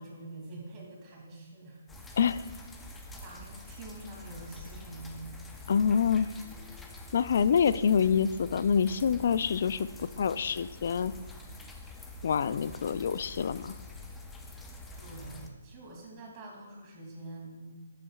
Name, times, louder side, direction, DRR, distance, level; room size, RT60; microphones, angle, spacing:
voice 1, 0.0-2.2 3.2-5.3 15.0-17.8, right 2 dB, 25° right, -2 dB, 2.5 m, -46 dB
sound 1, 1.9-15.5, left 2 dB, 10° left, 0.7 m, -46 dB
voice 2, 5.7-6.3 7.1-11.1 12.2-13.7, left 7 dB, 55° left, 15 dB, 0.3 m, -26 dB
12.0 x 8.4 x 2.4 m, 1.2 s
hypercardioid pair, 145°, 0 cm